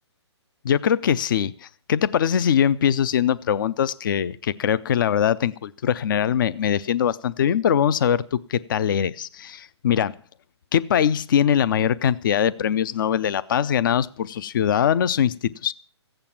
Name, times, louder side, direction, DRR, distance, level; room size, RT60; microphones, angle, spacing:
voice 1, 0.6-10.1 10.7-15.7, left 9 dB, 45° left, 19 dB, 0.5 m, -22 dB
15.0 x 9.0 x 7.3 m, 0.43 s
hypercardioid pair, 160°, 15 cm